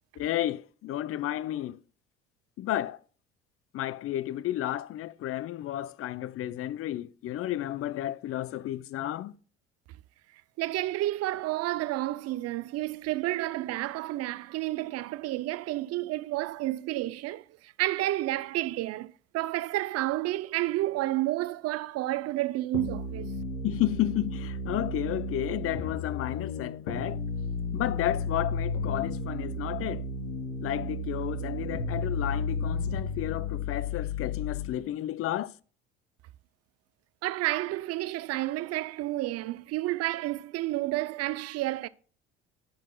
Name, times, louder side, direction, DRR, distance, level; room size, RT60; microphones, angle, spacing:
voice 1, 0.2-1.8 2.6-3.0 3.7-9.3 23.6-27.2 27.7-30.1 30.6-35.5, left 13 dB, 45° left, 0.5 m, -32 dB
voice 2, 10.6-23.3 37.2-41.9, right 16 dB, 50° right, 0.5 m, -30 dB
sound 1, 22.7-34.8, left 3 dB, 80° left, 2.4 m, -33 dB
10.5 x 7.7 x 2.3 m
hypercardioid pair, 65°, 31 cm